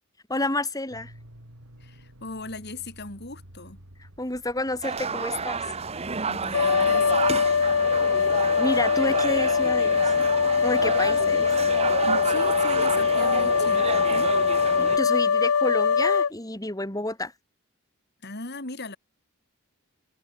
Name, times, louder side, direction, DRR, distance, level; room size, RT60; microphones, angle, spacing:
voice 1, 0.3-1.1 4.2-5.8 8.6-10.1 10.6-11.5 14.8-17.3, left 2 dB, 15° left, 4.0 m, -30 dB
sound 1, 0.9-15.0, equal, 85° right, 5.7 m, -48 dB
voice 2, 1.8-3.8 6.3-7.3 12.1-14.4 18.2-19.0, left 2 dB, 50° left, 4.2 m, -38 dB
sound 2, 4.8-15.0, right 5 dB, 30° right, 1.1 m, -30 dB
sound 3, 6.5-16.3, left 6 dB, 80° left, 0.7 m, -22 dB
head